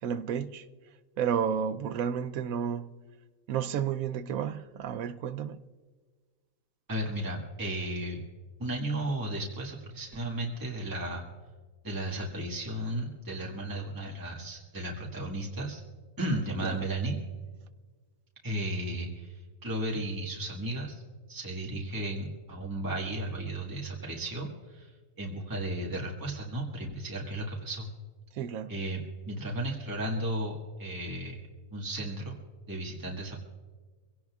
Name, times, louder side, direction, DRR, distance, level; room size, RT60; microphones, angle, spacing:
voice 1, 0.0-0.7 1.2-3.0 3.5-5.6 16.6-16.8 28.3-28.8, right 8 dB, 85° right, 1.1 m, -31 dB
voice 2, 6.9-8.2 8.6-11.2 11.8-15.8 16.2-17.2 18.4-21.0 21.3-24.9 25.2-27.9 28.7-29.0 29.3-31.4 31.7-32.4 32.7-33.3, right 1 dB, 15° right, 1.7 m, -34 dB
24.5 x 17.0 x 2.4 m
omnidirectional pair, 1.4 m